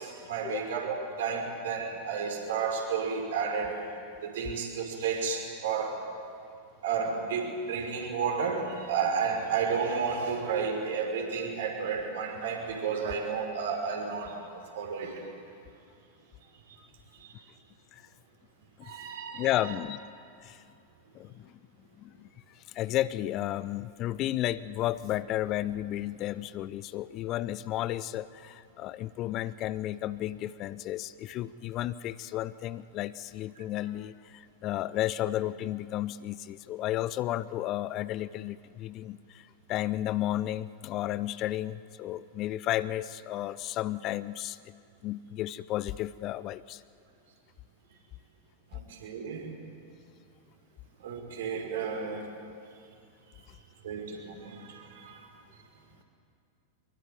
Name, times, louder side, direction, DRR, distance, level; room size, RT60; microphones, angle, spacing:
voice 1, 0.0-3.8 4.2-6.0 6.8-14.4 14.7-15.3 16.7-16.8 17.2-17.4 18.8-19.7 48.7-49.5 51.0-52.3 53.8-55.3, right 6 dB, 60° right, 1 dB, 5.7 m, -32 dB
voice 2, 19.3-20.1 20.4-20.6 21.1-21.5 22.0-44.6 45.0-46.8, left 14 dB, 35° left, 18 dB, 0.6 m, -33 dB
24.0 x 23.0 x 9.4 m, 2.4 s
figure-of-eight pair, 90°, 0 cm